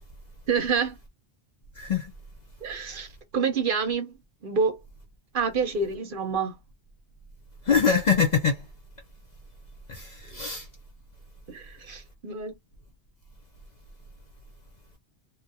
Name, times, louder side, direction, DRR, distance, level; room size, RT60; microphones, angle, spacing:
voice 1, 0.5-1.0 2.6-4.1 4.4-4.8 5.3-6.6 11.5-12.5, right 5 dB, 55° right, 0.7 m, -27 dB
voice 2, 1.8-2.1 7.7-8.6 9.9-10.7, left 6 dB, 55° left, 0.5 m, -24 dB
2.3 x 2.1 x 2.6 m
omnidirectional pair, 1.1 m